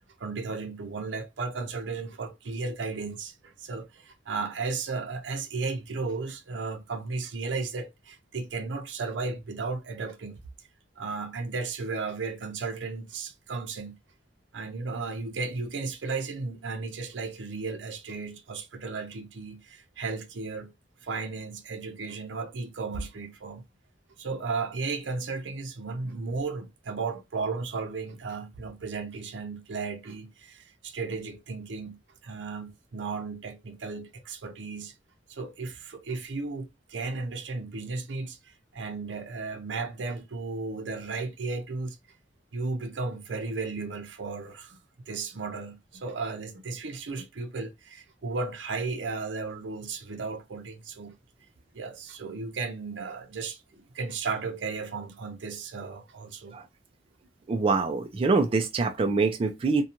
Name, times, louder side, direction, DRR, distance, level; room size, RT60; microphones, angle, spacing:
voice 1, 0.2-10.4 11.0-14.0 14.5-20.7 21.0-23.6 24.2-34.9 35.3-42.0 42.5-44.8 45.1-51.2 51.7-56.6, right 4 dB, 80° right, 0.6 m, -34 dB
voice 2, 57.5-59.8, right 4 dB, 30° right, 0.3 m, -25 dB
2.5 x 2.2 x 2.8 m
head